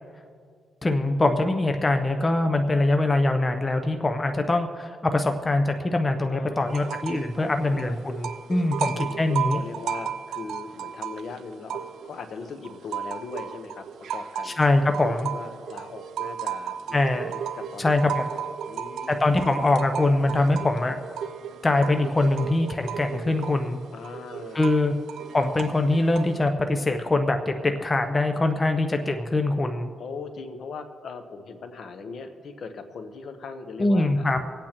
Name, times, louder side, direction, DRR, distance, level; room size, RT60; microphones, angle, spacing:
voice 1, 0.8-9.6 14.5-15.3 16.9-17.3 17.8-18.2 19.2-20.9 21.6-23.8 24.5-24.9 25.3-29.9 33.8-34.4, left 2 dB, 20° left, 6 dB, 0.6 m, -23 dB
voice 2, 6.3-7.0 7.4-8.0 8.7-14.6 15.0-18.1 18.7-19.2 23.9-25.0 30.0-34.4, left 4 dB, 65° left, 7 dB, 1.0 m, -40 dB
sound 1, 6.7-7.3 7.6-12.2 12.6-26.5, right 8 dB, 85° right, 0.5 m, -34 dB
25.5 x 8.6 x 3.0 m, 2.2 s
cardioid pair, 110°, 0 cm